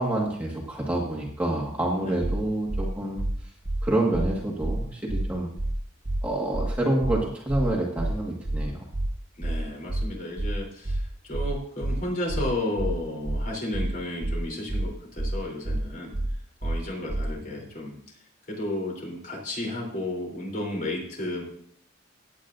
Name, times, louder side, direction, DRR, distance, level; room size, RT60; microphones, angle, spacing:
voice 1, 0.0-3.2 3.8-5.5 6.2-8.8, right 1 dB, 10° right, -4 dB, 1.7 m, -27 dB
sound 1, 2.2-2.4 2.7-2.8 3.2-3.3 3.6-3.8 4.1-4.3 4.6-4.8 5.1-5.2 5.6-5.7 6.0-6.2 6.5-6.7 7.0-7.2 7.5-7.6 8.0-8.1 8.4-8.6 8.9-9.1 9.4-9.6 9.9-10.0 10.4-10.5 10.8-11.0 11.3-11.5 11.8-12.0 12.3-12.4 12.8-12.9 13.2-13.4 13.7-13.9 14.2-14.4 14.7-14.8 15.2-15.3 15.6-15.8 16.1-16.3 16.6-16.8 17.1-17.2, right 1 dB, 25° right, 0.6 m, -28 dB
voice 2, 9.4-16.1 16.6-17.9 18.5-21.4, left 1 dB, 45° left, -1 dB, 3.6 m, -33 dB
18.0 x 8.5 x 2.6 m, 0.63 s
head